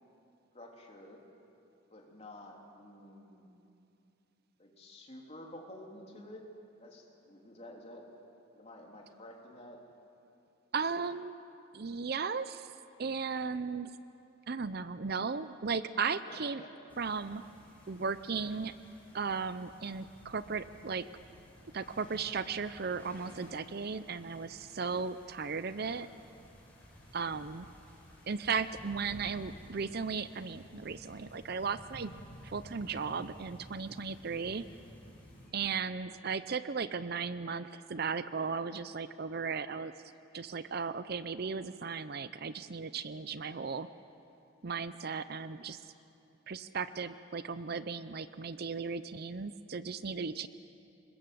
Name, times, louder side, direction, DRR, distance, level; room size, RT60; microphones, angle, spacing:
voice 1, 0.5-1.3 1.9-3.5 4.6-6.4 6.8-8.1 8.5-9.8 16.4-16.8, left 1 dB, 30° left, 0 dB, 3.4 m, -50 dB
voice 2, 10.7-11.3 11.7-12.7 13.0-13.9 14.5-16.6 17.0-17.4 17.9-18.7 19.1-21.1 21.7-26.1 27.1-27.7 28.3-32.1 32.4-34.6 35.5-39.9 40.3-43.9 44.6-45.8 46.5-50.5, right 5 dB, 50° right, 13 dB, 0.6 m, -36 dB
sound 1, 16.9-35.5, equal, 10° left, 5.9 m, -54 dB
26.5 x 21.0 x 7.8 m, 2.7 s
head